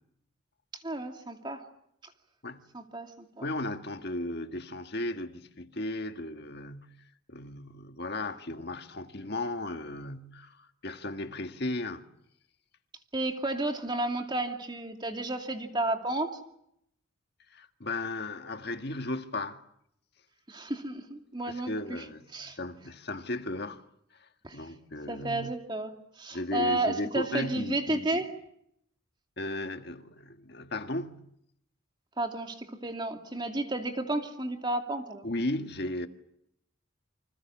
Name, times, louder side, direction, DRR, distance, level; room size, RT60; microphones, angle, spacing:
voice 1, 0.7-1.6 2.7-3.1 3.4-3.5 13.1-16.4 20.5-22.0 22.3-22.6 24.4-24.6 25.1-25.9 26.2-28.3 32.2-35.3, right 2 dB, 20° right, 2.6 m, -32 dB
voice 2, 3.4-7.0 7.3-12.1 17.5-19.6 21.5-23.8 24.1-25.5 26.3-28.2 29.4-31.3 35.2-36.1, left 2 dB, 50° left, 1.7 m, -35 dB
29.0 x 26.5 x 7.3 m
head